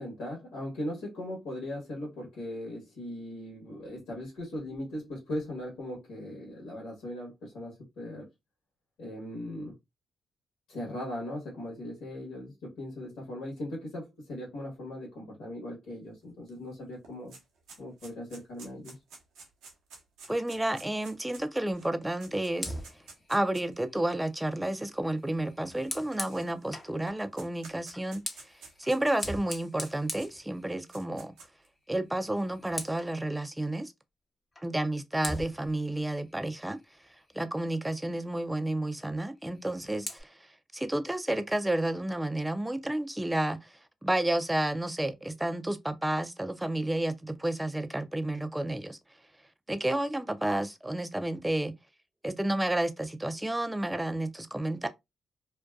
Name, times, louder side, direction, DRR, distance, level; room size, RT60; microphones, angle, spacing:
voice 1, 0.0-8.2 9.0-9.8 10.7-17.4 17.8-19.0, left 1 dB, 85° left, 1.1 m, -39 dB
sound 1, 16.5-16.6 16.8-23.8 24.5-24.6 25.7-26.7 27.1-30.3 30.7-31.7, right 4 dB, 85° right, 0.6 m, -51 dB
voice 2, 20.3-22.7 23.3-28.2 28.8-31.4 31.9-33.9 34.6-36.8 37.4-40.3 40.7-43.6 44.0-49.0 49.7-51.7 52.2-54.9, right 1 dB, 10° right, 0.4 m, -31 dB
Fire, 22.5-27.0 27.9-31.1 31.5-31.8 32.1-33.2 34.6-34.7 35.2-37.5 39.4-40.2, left 1 dB, 30° left, 0.7 m, -42 dB
2.5 x 2.2 x 2.2 m
supercardioid pair, 55°, 0 cm